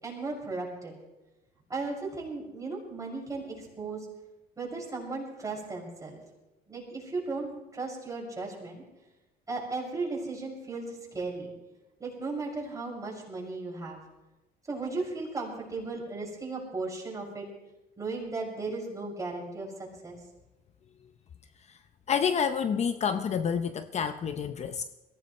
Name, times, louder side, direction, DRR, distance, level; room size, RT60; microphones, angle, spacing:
voice 1, 0.0-1.0 1.7-4.1 4.6-6.2 6.7-8.8 9.5-11.5 12.0-14.0 14.7-17.5 18.0-20.2, right 3 dB, 20° right, 6.4 m, -36 dB
voice 2, 22.1-24.9, left 7 dB, 40° left, 0.7 m, -28 dB
21.5 x 17.0 x 3.2 m
cardioid pair, 110°, 17 cm